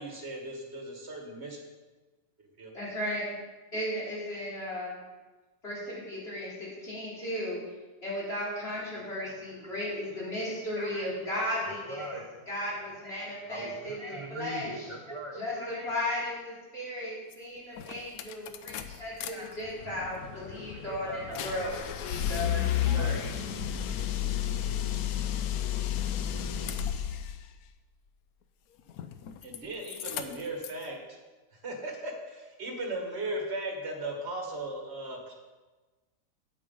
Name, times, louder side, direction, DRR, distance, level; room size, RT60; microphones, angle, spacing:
voice 1, 0.0-1.6 2.6-2.7 29.4-31.2 31.5-35.3, right 1 dB, 40° right, 1 dB, 1.9 m, -37 dB
voice 2, 2.7-3.3 3.7-5.0 5.6-7.6 8.0-12.1 12.5-14.9 15.3-22.6 22.9-23.2, left 1 dB, 35° left, -8 dB, 3.9 m, -35 dB
voice 3, 8.9-11.1 11.7-16.0 18.9-20.0 20.4-23.9, right 1 dB, 25° right, 1 dB, 0.7 m, -44 dB
sound 1, 17.3-17.4 17.8-19.3 19.6-27.4 28.9-29.6 29.8-30.8, left 10 dB, 70° left, 1.0 m, -32 dB
8.4 x 8.1 x 5.3 m, 1.2 s
omnidirectional pair, 1.8 m